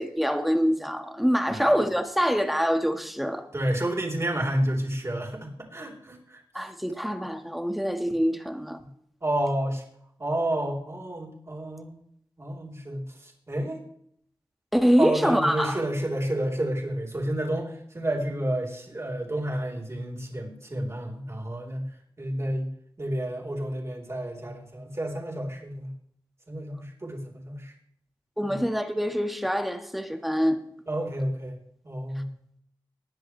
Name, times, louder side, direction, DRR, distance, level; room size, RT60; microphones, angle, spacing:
voice 1, 0.0-3.5 6.5-8.8 14.7-15.8 28.4-30.6, equal, ahead, 1.6 m, -25 dB
voice 2, 3.5-6.4 9.2-9.8 10.2-12.0 12.4-13.0 13.5-13.8 15.0-21.9 22.2-22.7 23.0-25.9 26.5-27.7 28.4-28.5 30.9-31.6 31.8-32.3, right 1 dB, 35° right, 3.5 m, -30 dB
19.5 x 9.9 x 3.3 m
wide cardioid pair, 80°, 9 cm